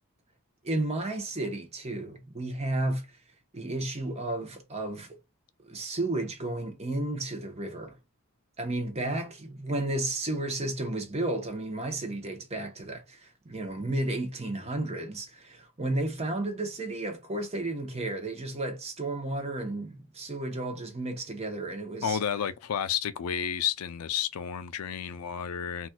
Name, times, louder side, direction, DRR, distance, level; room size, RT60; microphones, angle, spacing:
voice 1, 0.6-3.1 3.5-5.2 5.7-7.9 8.6-22.2, right 2 dB, 30° right, 0.8 m, -32 dB
voice 2, 22.0-25.9, left 8 dB, 80° left, 0.4 m, -31 dB
4.1 x 2.4 x 2.2 m
head